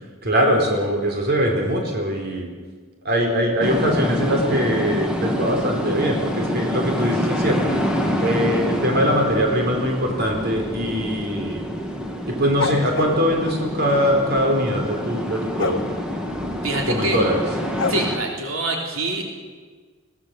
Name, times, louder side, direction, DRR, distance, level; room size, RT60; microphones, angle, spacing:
voice 1, 0.2-2.5 3.0-7.7 8.2-11.6 12.3-15.8 16.9-17.4, equal, 50° right, 1 dB, 4.2 m, -22 dB
sound 1, 3.6-18.2, equal, 5° right, 2.4 m, -26 dB
sound 2, 12.6-13.2 15.6-15.9 17.8-17.9, left 3 dB, 65° left, 1.1 m, -24 dB
voice 2, 16.6-17.2 17.9-19.2, right 2 dB, 90° right, 1 dB, 3.8 m, -25 dB
22.0 x 17.5 x 7.7 m, 1.5 s
head